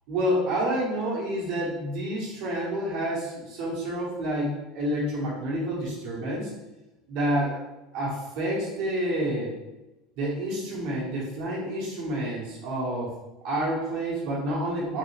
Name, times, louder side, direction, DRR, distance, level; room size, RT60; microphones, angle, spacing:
voice 1, 0.1-6.5 7.1-7.6 7.9-9.5 10.2-13.1 13.4-15.0, right 1 dB, 55° right, -5 dB, 1.3 m, -28 dB
3.8 x 3.4 x 3.3 m, 1.0 s
cardioid pair, 165°, 0 cm